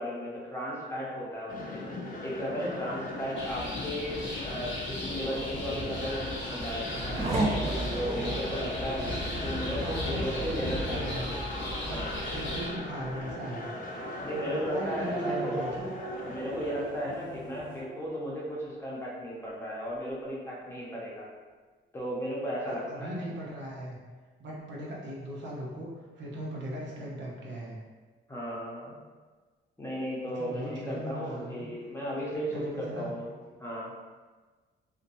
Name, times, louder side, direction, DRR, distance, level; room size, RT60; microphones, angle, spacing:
voice 1, 0.0-1.8 2.2-7.3 7.9-11.3 11.9-12.3 14.2-15.6 16.2-21.3 21.9-23.2 28.3-29.0 29.8-33.3 33.6-33.9, equal, 15° left, -6 dB, 0.7 m, -35 dB
sound 1, 1.5-17.8, left 2 dB, 45° left, 0.5 m, -40 dB
sound 2, 3.4-12.7, left 1 dB, 70° left, 0.8 m, -36 dB
Race car auto racing / Accelerating revving vroom, 6.0-19.0 19.4-20.1, right 2 dB, 35° right, 0.5 m, -37 dB
voice 2, 8.9-11.3 11.8-12.1 12.3-13.7 14.3-15.9 22.7-24.0 24.4-27.8 30.3-31.7 32.3-33.1, equal, 65° right, -4 dB, 0.7 m, -39 dB
2.8 x 2.1 x 2.6 m, 1.4 s
cardioid pair, 90°, 20 cm